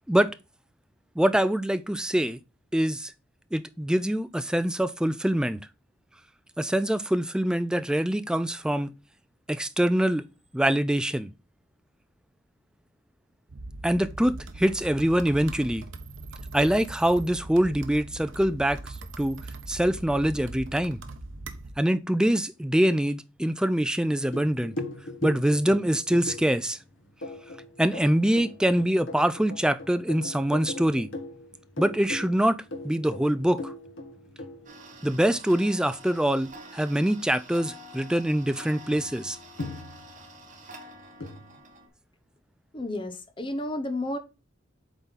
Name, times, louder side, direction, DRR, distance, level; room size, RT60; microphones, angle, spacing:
voice 1, 1.2-2.4 2.7-3.1 3.5-5.6 6.6-8.9 9.5-10.3 10.5-11.3 13.8-15.9 16.5-19.4 19.7-21.0 21.8-24.8 25.2-26.8 27.8-31.1 31.8-32.6 32.8-33.7 35.0-39.4, right 1 dB, 5° right, 0.3 m, -24 dB
sound 1, 13.5-21.7, right 2 dB, 85° right, 0.9 m, -41 dB
sound 2, 24.3-35.5 38.4-38.5 38.9-40.6 41.2-41.6, left 2 dB, 80° left, 1.4 m, -39 dB
Tick-tock, 34.7-41.9, right 1 dB, 40° right, 1.5 m, -47 dB
voice 2, 42.7-44.2, left 1 dB, 25° left, 0.9 m, -31 dB
8.0 x 3.9 x 4.0 m
head